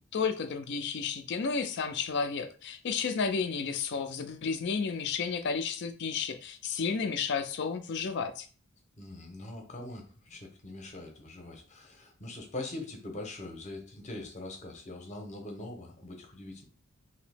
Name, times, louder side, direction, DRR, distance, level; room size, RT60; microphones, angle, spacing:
voice 1, 0.1-8.5, left 5 dB, 55° left, 8 dB, 0.4 m, -32 dB
voice 2, 9.0-16.7, left 2 dB, 35° left, 3 dB, 0.8 m, -42 dB
2.9 x 2.8 x 3.3 m, 0.38 s
head